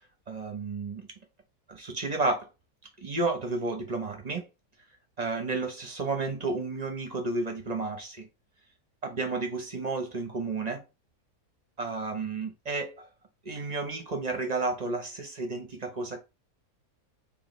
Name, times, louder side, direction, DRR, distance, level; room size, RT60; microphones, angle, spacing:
voice 1, 0.3-1.1 1.7-2.5 3.0-4.5 5.2-8.3 9.0-10.8 11.8-13.1 13.4-16.2, right 3 dB, 35° right, 0.7 m, -32 dB
4.7 x 2.8 x 3.1 m
omnidirectional pair, 1.6 m